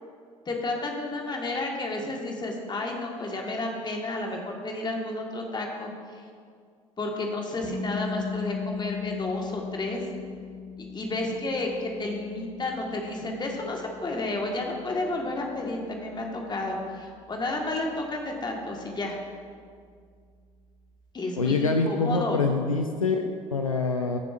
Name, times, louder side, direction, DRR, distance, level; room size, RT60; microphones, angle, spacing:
voice 1, 0.4-5.9 7.0-10.0 10.8-19.2 21.1-22.4, left 2 dB, 25° left, 1 dB, 1.6 m, -31 dB
sound 1, 7.6-19.5, left 5 dB, 25° right, 1.6 m, -39 dB
voice 2, 21.4-24.2, left 3 dB, 90° left, 5 dB, 0.4 m, -25 dB
15.5 x 6.8 x 2.5 m, 2.1 s
figure-of-eight pair, 55°, 17 cm